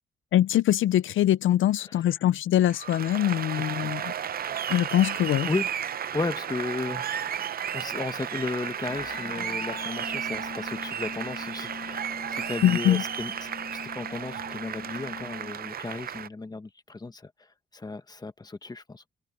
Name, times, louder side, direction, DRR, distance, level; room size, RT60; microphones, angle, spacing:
voice 1, 0.3-4.0 4.7-5.5 12.6-13.0, left 12 dB, 75° left, 0.5 m, -23 dB
Applause, 2.7-16.3, right 9 dB, 50° right, 0.6 m, -33 dB
voice 2, 3.5-3.9 5.5-5.7 6.1-7.1 7.7-13.5 13.9-17.3 17.7-19.0, left 3 dB, 20° left, 1.3 m, -34 dB
sound 1, 8.9-15.5, left 5 dB, 40° left, 1.7 m, -42 dB
cardioid pair, 115°, 20 cm